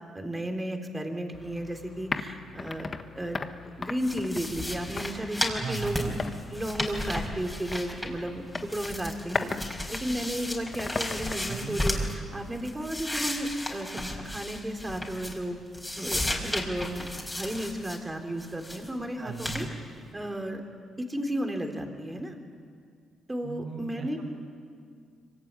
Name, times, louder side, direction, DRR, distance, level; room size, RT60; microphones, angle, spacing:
voice 1, 0.1-3.4 3.8-6.1 6.5-12.0 12.3-15.6 16.0-17.1 17.4-19.7 20.1-20.6 21.0-22.3 23.3-24.2, right 1 dB, 15° right, 4 dB, 3.7 m, -33 dB
sound 1, 1.3-12.7, left 4 dB, 35° left, 1.5 m, -39 dB
sound 2, 4.0-8.3 8.5-12.1 12.5-15.5 15.7-18.0 18.4-18.9 19.4-19.7, left 1 dB, 10° left, 4.9 m, -34 dB
voice 2, 5.6-6.2 11.5-11.8 19.2-19.7 23.4-24.1, right 4 dB, 60° right, -3 dB, 6.0 m, -36 dB
25.0 x 24.0 x 9.8 m, 2.1 s
cardioid pair, 90°, 0 cm